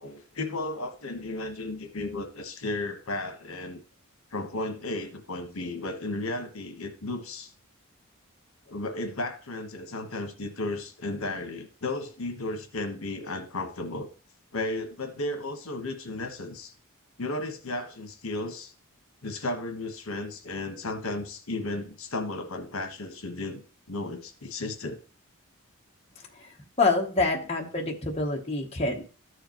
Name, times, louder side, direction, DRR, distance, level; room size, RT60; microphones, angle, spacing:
voice 1, 0.0-3.8 4.3-7.5 8.7-14.1 14.5-16.7 17.2-18.7 19.2-23.6 23.9-25.0 27.3-27.5, left 2 dB, 75° left, 6 dB, 1.2 m, -34 dB
voice 2, 26.8-29.0, left 3 dB, 25° left, 0 dB, 1.0 m, -26 dB
14.0 x 4.9 x 3.0 m, 0.38 s
head